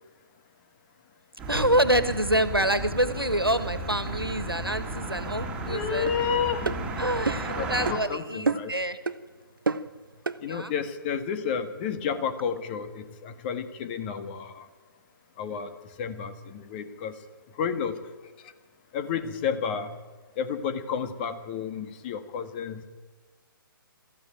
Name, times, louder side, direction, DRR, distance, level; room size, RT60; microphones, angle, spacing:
sound 1, 1.4-7.9, right 2 dB, 10° right, 3.3 m, -34 dB
voice 1, 1.5-6.1 7.0-9.0 10.5-10.7, right 1 dB, 90° right, 12 dB, 1.9 m, -26 dB
voice 2, 5.6-6.7 7.5-8.7 10.4-14.7 15.4-15.7 16.0-17.2 17.6-18.0 18.9-20.0 20.4-22.8, left 7 dB, 25° left, 9 dB, 1.6 m, -31 dB
sound 2, 6.1-6.2 6.7-6.8 7.3-7.5 7.9-8.0 8.5-8.8 9.1-9.2 9.7-9.9 10.3-10.4, right 4 dB, 70° right, 1.0 m, -28 dB
23.0 x 14.5 x 8.9 m, 1.4 s
figure-of-eight pair, 135°, 12 cm